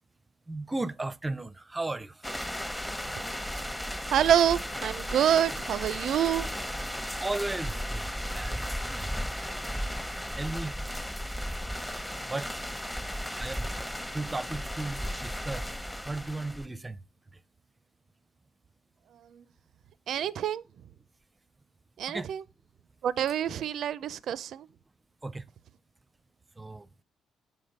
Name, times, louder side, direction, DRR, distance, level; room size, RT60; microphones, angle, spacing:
voice 1, 0.5-2.4 7.2-9.2 10.4-10.8 12.3-12.5 13.4-13.7 14.1-17.0 17.3-17.4 22.1-22.3 23.5-23.6 25.2-25.4 26.6-26.9, right 2 dB, 20° right, 0.5 m, -36 dB
sound 1, 2.2-16.7, equal, 10° left, 0.8 m, -35 dB
voice 2, 4.1-6.5 20.1-20.6 22.0-22.4 23.0-24.7, right 10 dB, 70° right, 0.4 m, -26 dB
7.5 x 5.1 x 5.3 m
cardioid pair, 90°, 0 cm